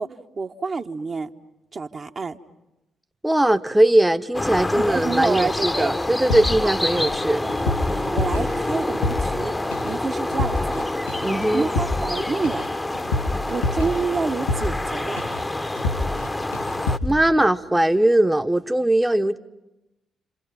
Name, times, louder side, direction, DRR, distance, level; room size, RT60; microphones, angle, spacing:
voice 1, 0.0-1.3 1.7-2.4 4.7-5.9 6.6-6.7 7.4-7.6 7.9-9.5 9.8-10.9 11.5-12.7 13.5-15.2, right 4 dB, 40° right, 1.1 m, -28 dB
voice 2, 3.2-7.4 11.2-11.7 17.0-19.4, right 1 dB, 10° right, 0.9 m, -20 dB
sound 1, 4.3-17.0, left 2 dB, 20° left, 0.9 m, -27 dB
sound 2, 6.3-7.2 7.5-9.4 9.7-10.0 10.3-10.8 11.1-14.9 15.2-15.5 15.8-16.3 16.5-17.2, left 2 dB, 85° left, 3.6 m, -27 dB
29.0 x 27.5 x 5.9 m
figure-of-eight pair, 40°, 0 cm